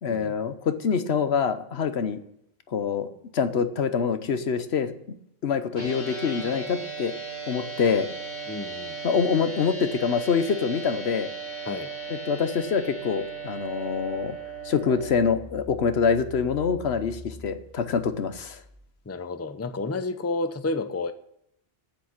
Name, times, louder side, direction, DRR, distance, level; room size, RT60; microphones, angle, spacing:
voice 1, 0.0-2.2 2.7-3.1 3.3-5.2 5.4-7.1 7.5-8.1 9.0-11.3 12.1-14.4 14.6-18.6, left 6 dB, 75° left, 11 dB, 1.2 m, -25 dB
sound 1, 5.7-15.1, right 5 dB, 45° left, 5.3 m, -36 dB
voice 2, 8.5-9.0 11.6-11.9 19.1-21.1, left 3 dB, 15° left, 10 dB, 0.6 m, -30 dB
Engine, 13.1-19.0, left 2 dB, 65° right, 3.1 m, -46 dB
9.1 x 8.2 x 8.6 m, 0.76 s
omnidirectional pair, 1.1 m